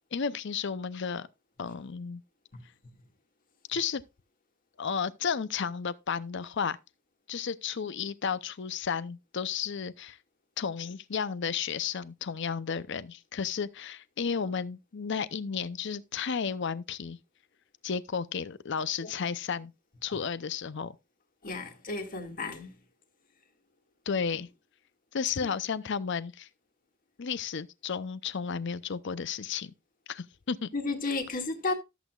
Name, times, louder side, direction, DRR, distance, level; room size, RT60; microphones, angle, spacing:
voice 1, 0.1-1.3 1.6-2.2 3.7-4.0 4.8-6.8 7.3-10.2 10.6-17.2 17.8-19.7 20.0-20.9 24.1-24.5 25.1-26.5 27.2-29.7 30.1-30.7, left 6 dB, 60° left, 0.6 m, -33 dB
voice 2, 21.4-22.7 30.7-31.7, left 3 dB, 45° left, 2.0 m, -33 dB
13.5 x 8.1 x 2.4 m
head